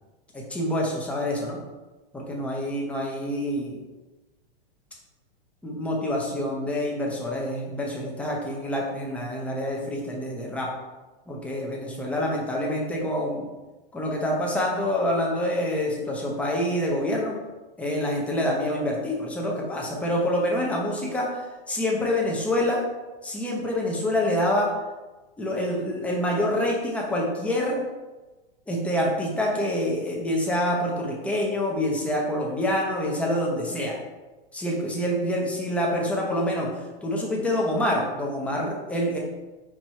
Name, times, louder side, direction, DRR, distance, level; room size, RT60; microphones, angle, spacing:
voice 1, 0.3-1.6 2.1-3.8 5.6-10.7 11.3-13.4 13.9-17.3 17.8-21.4 21.7-22.8 23.2-24.7 25.4-27.7 28.7-34.0 34.5-36.7 37.0-39.2, left 1 dB, 5° left, -3 dB, 0.7 m, -26 dB
4.7 x 2.6 x 4.3 m, 1.2 s
hypercardioid pair, 140°, 29 cm